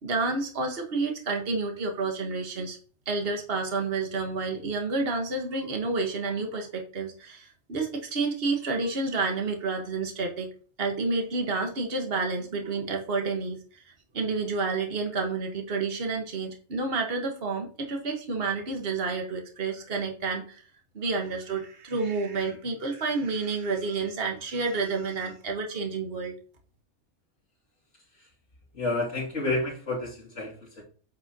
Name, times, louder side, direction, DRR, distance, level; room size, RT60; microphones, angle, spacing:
voice 1, 0.0-2.8 3.0-10.5 10.8-13.6 14.1-20.6 20.9-26.3, right 3 dB, 55° right, 3 dB, 1.6 m, -29 dB
voice 2, 28.7-30.8, left 2 dB, 75° left, -4 dB, 3.0 m, -30 dB
8.8 x 5.8 x 2.9 m, 0.41 s
omnidirectional pair, 1.2 m